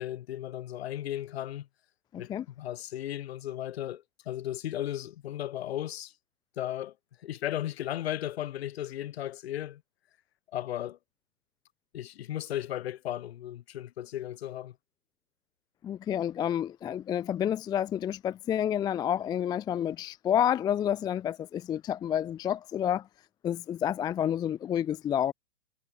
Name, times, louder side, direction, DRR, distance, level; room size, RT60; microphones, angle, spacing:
voice 1, 0.0-1.7 2.2-2.3 2.6-6.1 6.6-6.9 7.2-9.8 10.5-11.0 11.9-14.7, left 12 dB, 55° left, 4.1 m, -35 dB
voice 2, 2.1-2.4 15.8-23.1 23.4-25.3, left 10 dB, 10° left, 0.6 m, -29 dB
hypercardioid pair, 125°, 37 cm